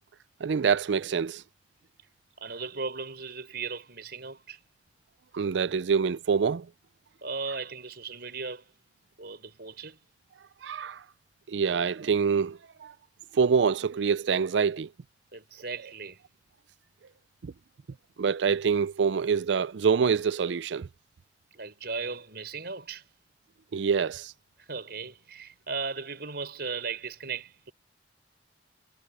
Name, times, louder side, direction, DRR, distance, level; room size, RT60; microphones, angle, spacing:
voice 1, 0.4-1.4 5.3-6.7 10.6-11.0 11.5-12.9 13.3-14.9 17.4-17.5 18.2-20.9 23.7-24.3, right 6 dB, 85° right, 0.4 m, -26 dB
voice 2, 2.4-4.6 7.2-8.7 9.2-10.0 15.3-16.2 21.5-23.1 24.6-27.7, right 4 dB, 65° right, 6.0 m, -37 dB
head